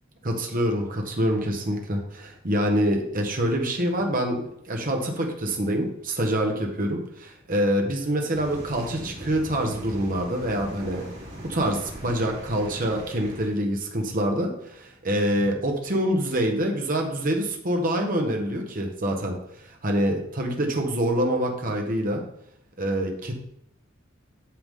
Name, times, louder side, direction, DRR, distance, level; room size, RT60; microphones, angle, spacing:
voice 1, 0.2-11.0 11.4-19.4 19.8-22.2 22.8-23.3, equal, 45° right, 2 dB, 1.4 m, -26 dB
sound 1, 8.3-13.5, right 1 dB, 60° right, 3.8 m, -40 dB
8.8 x 6.9 x 3.8 m, 0.74 s
head